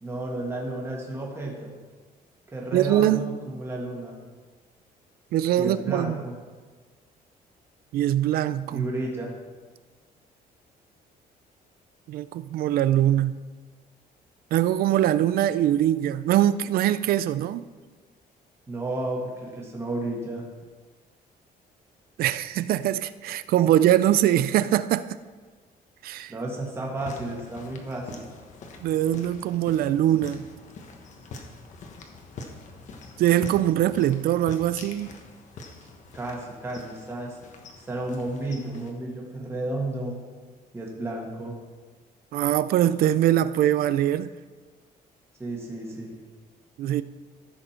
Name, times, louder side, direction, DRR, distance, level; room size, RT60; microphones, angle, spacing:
voice 1, 0.0-1.7 2.5-4.1 5.6-6.3 8.7-9.3 18.7-20.4 26.3-28.3 36.1-37.4 37.9-40.1 40.7-41.5 45.4-46.1, right 2 dB, 15° right, 1.9 m, -32 dB
voice 2, 2.7-3.3 5.3-6.2 7.9-8.9 12.1-13.4 14.5-17.7 22.2-25.2 26.0-26.3 28.8-30.5 33.2-35.1 42.3-44.3 46.8-47.0, right 12 dB, 65° right, 0.4 m, -22 dB
sound 1, 27.0-38.9, left 3 dB, 50° left, 1.2 m, -44 dB
14.5 x 6.8 x 4.4 m
cardioid pair, 170°, 16 cm